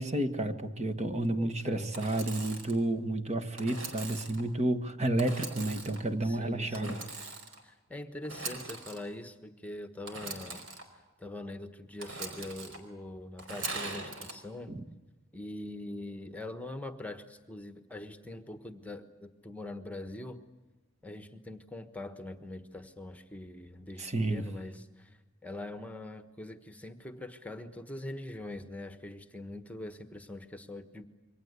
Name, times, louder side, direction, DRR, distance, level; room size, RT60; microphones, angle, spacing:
voice 1, 0.0-7.0 14.7-14.8 24.0-24.4, right 1 dB, 35° right, 7 dB, 1.6 m, -31 dB
voice 2, 1.4-2.0 6.2-7.0 7.6-10.6 11.2-14.8 15.3-20.4 21.0-31.1, left 1 dB, 5° left, 9 dB, 1.3 m, -43 dB
Engine / Sawing, 1.9-2.8 3.6-4.4 5.2-6.0 6.7-7.6 8.2-9.0 10.1-10.8 12.0-12.8 13.4-14.3, right 3 dB, 70° right, 4.9 m, -41 dB
28.0 x 24.0 x 8.3 m, 1.2 s
head